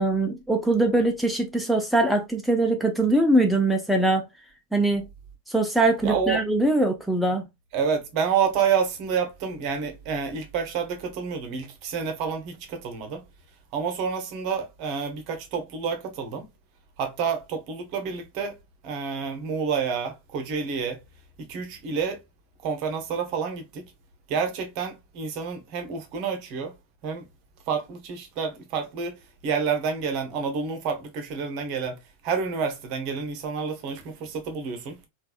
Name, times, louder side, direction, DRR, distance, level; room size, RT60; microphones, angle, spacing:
voice 1, 0.0-4.3 4.7-5.1 5.5-7.5, right 2 dB, ahead, 0.4 m, -22 dB
voice 2, 6.0-6.4 7.7-13.2 13.7-16.5 17.0-18.6 18.8-21.0 21.4-22.2 22.6-23.9 24.3-26.7 27.0-27.3 27.7-35.0, right 6 dB, 40° right, 0.8 m, -29 dB
3.3 x 2.3 x 2.3 m
figure-of-eight pair, 90°, 0 cm